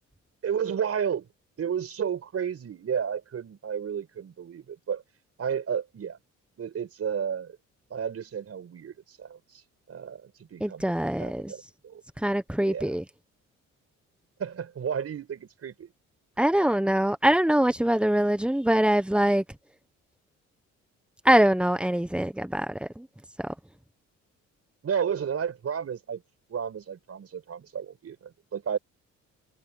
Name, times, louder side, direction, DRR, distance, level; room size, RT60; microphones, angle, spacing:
voice 1, 0.4-1.3 1.6-5.0 5.4-6.2 6.6-7.6 7.9-9.6 9.9-10.9 11.2-12.0 12.6-13.0 14.4-15.9 24.8-26.2 26.5-28.8, right 7 dB, 50° right, 5.6 m, -32 dB
voice 2, 10.6-11.5 12.2-13.0 16.4-19.4 21.2-23.1 23.4-23.5, right 1 dB, 5° right, 1.2 m, -23 dB
cardioid pair, 90°, 30 cm